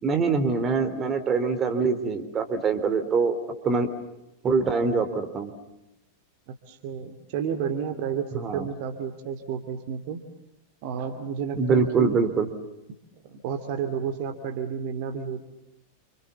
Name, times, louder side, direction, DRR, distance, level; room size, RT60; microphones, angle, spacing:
voice 1, 0.0-3.4 3.6-3.9 4.4-5.5 8.4-8.6 11.5-12.5, right 4 dB, 25° right, 8 dB, 3.6 m, -24 dB
voice 2, 6.5-8.3 8.5-10.2 10.8-12.2 13.2-15.5, right 7 dB, 50° right, 6 dB, 2.8 m, -31 dB
29.5 x 28.0 x 7.1 m, 0.91 s
figure-of-eight pair, 90°, 0 cm